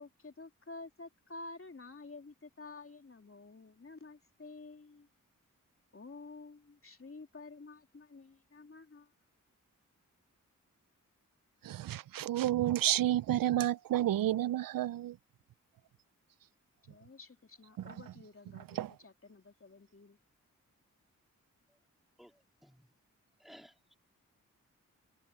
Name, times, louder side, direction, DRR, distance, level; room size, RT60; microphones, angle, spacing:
voice 1, 0.0-5.1 5.9-9.1 16.8-20.2, left 3 dB, 40° left, 3.0 m, -51 dB
voice 2, 11.6-15.2 18.7-18.9, right 13 dB, 80° right, 0.5 m, -30 dB
voice 3, 22.2-22.9 23.4-24.0, equal, ahead, 3.0 m, -58 dB
cardioid pair, 45°, 33 cm